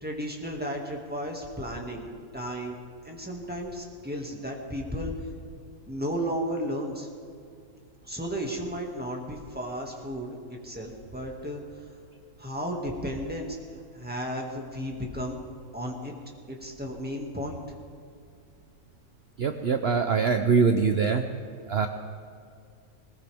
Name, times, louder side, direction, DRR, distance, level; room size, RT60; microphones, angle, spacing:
voice 1, 0.0-2.8 3.0-5.1 5.9-7.1 8.0-10.4 10.6-11.6 12.4-13.6 13.9-15.4 15.7-16.1 16.5-17.6, equal, 5° right, -1 dB, 2.0 m, -34 dB
voice 2, 19.4-21.2 21.7-21.9, right 5 dB, 55° right, 6 dB, 0.8 m, -23 dB
20.0 x 19.0 x 3.5 m, 2.4 s
omnidirectional pair, 1.6 m